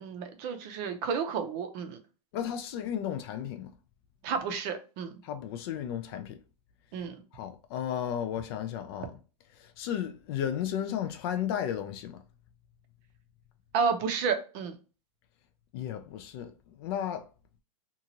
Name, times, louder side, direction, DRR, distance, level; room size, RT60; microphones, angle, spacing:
voice 1, 0.0-2.0 4.2-5.2 6.9-7.2 13.7-14.8, right 6 dB, 35° right, 0.6 m, -31 dB
voice 2, 2.3-3.7 5.2-6.4 7.3-9.1 9.6-12.1 15.7-16.5 16.8-17.2, left 9 dB, 40° left, 0.4 m, -34 dB
2.7 x 2.4 x 2.8 m
hypercardioid pair, 140°, 20 cm